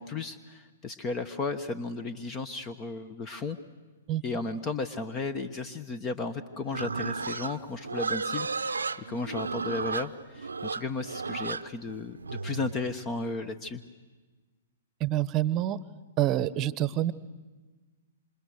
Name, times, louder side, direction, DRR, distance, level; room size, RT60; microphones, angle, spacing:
voice 1, 0.0-3.6 4.2-8.8 9.1-13.8, left 3 dB, 25° left, 11 dB, 1.1 m, -34 dB
Livestock farm animals working animals, 6.7-12.8, right 4 dB, 90° right, 0.7 m, -33 dB
voice 2, 15.0-15.8 16.2-17.1, right 13 dB, 30° right, 16 dB, 1.0 m, -27 dB
27.5 x 26.5 x 6.5 m, 1.3 s
hypercardioid pair, 120°, 0 cm